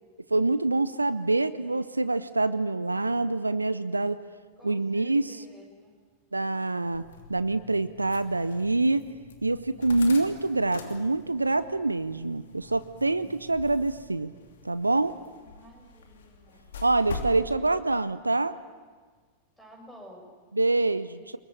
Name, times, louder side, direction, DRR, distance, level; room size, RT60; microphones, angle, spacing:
voice 1, 0.3-4.2 4.6-5.4 6.3-9.0 9.4-14.3 14.6-15.1 16.8-18.5 20.5-21.4, right 2 dB, 80° right, 15 dB, 0.6 m, -26 dB
voice 2, 4.6-5.9 15.4-16.7 19.6-20.4, equal, 5° left, 1 dB, 7.0 m, -51 dB
sound 1, 6.9-17.4, left 3 dB, 65° left, 2.9 m, -44 dB
24.0 x 21.5 x 8.6 m, 1.5 s
figure-of-eight pair, 90°, 0 cm